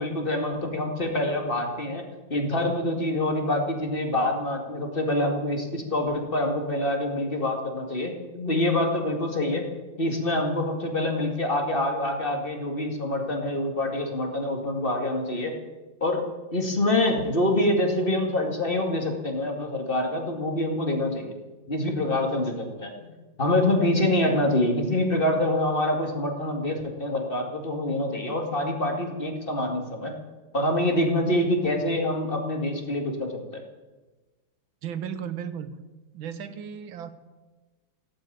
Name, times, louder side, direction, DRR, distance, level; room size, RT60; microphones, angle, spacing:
voice 1, 0.0-9.7 10.0-15.6 16.0-16.2 16.5-21.3 21.7-23.1 23.4-30.1 30.5-33.3, left 1 dB, 25° left, 2 dB, 2.3 m, -26 dB
voice 2, 34.8-35.8 36.1-37.1, right 8 dB, 90° right, 12 dB, 1.8 m, -35 dB
16.5 x 9.1 x 9.3 m, 1.2 s
omnidirectional pair, 2.1 m